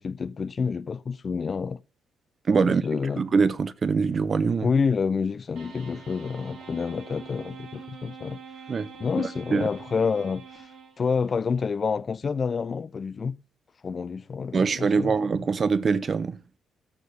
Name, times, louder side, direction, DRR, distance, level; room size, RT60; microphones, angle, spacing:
voice 1, 0.0-1.8 2.6-3.2 4.6-8.4 9.0-10.7 11.0-13.4 13.8-15.1, left 5 dB, 35° left, 0.4 m, -28 dB
voice 2, 2.5-2.8 3.2-4.7 8.7-8.9 9.2-9.7 14.5-16.4, right 5 dB, 40° right, 0.6 m, -23 dB
sound 1, 5.6-11.4, right 6 dB, 75° right, 3.3 m, -45 dB
13.5 x 6.5 x 3.3 m
cardioid pair, 115°, 0 cm